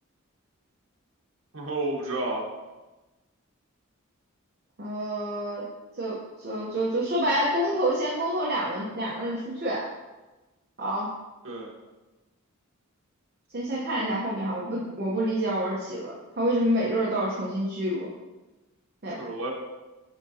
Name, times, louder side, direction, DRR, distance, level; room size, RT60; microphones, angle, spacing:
voice 1, 1.5-2.4 11.4-11.7 19.2-19.5, right 2 dB, 65° right, -2 dB, 1.3 m, -30 dB
voice 2, 4.8-5.6 6.0-9.9 10.8-11.1 13.5-18.1 19.0-19.2, right 1 dB, 45° right, -5 dB, 0.9 m, -28 dB
9.9 x 3.7 x 2.7 m, 1.1 s
head